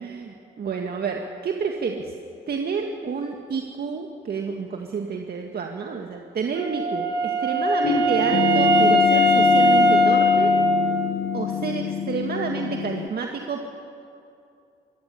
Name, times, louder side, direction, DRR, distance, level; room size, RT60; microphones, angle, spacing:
voice 1, 0.0-2.1 2.5-10.5 11.3-13.7, right 5 dB, 50° right, 2 dB, 1.9 m, -29 dB
Wind instrument woodwind instrument, 6.5-11.3, left 1 dB, 70° right, 3.9 m, -20 dB
sound 1, 7.8-13.1, left 7 dB, 60° left, 1.1 m, -26 dB
23.5 x 16.5 x 9.9 m, 2.6 s
cardioid pair, 90°, 20 cm